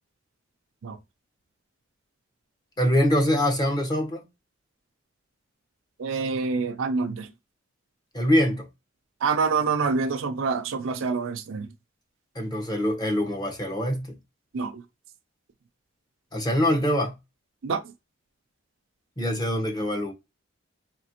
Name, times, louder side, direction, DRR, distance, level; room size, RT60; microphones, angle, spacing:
voice 1, 2.8-4.2 8.1-8.7 12.3-14.1 16.3-17.1 19.2-20.1, equal, 20° left, 1.0 m, -24 dB
voice 2, 6.0-7.3 9.2-11.7 14.5-14.7 17.6-17.8, right 4 dB, 75° right, 0.5 m, -26 dB
4.2 x 2.8 x 2.9 m
head